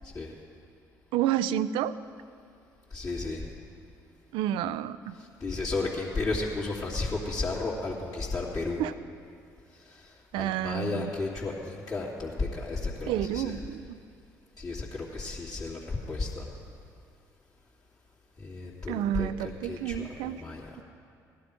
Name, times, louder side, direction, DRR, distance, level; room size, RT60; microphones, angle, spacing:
voice 1, 1.1-2.0 4.3-5.1 8.8-8.9 10.3-11.1 13.1-14.0 18.9-20.4, right 11 dB, 70° right, 14 dB, 0.4 m, -30 dB
voice 2, 2.9-3.5 5.1-8.8 9.9-13.6 14.6-16.5 18.4-20.7, left 3 dB, 45° left, -7 dB, 2.8 m, -33 dB
16.5 x 11.5 x 5.1 m, 2.4 s
hypercardioid pair, 50°, 9 cm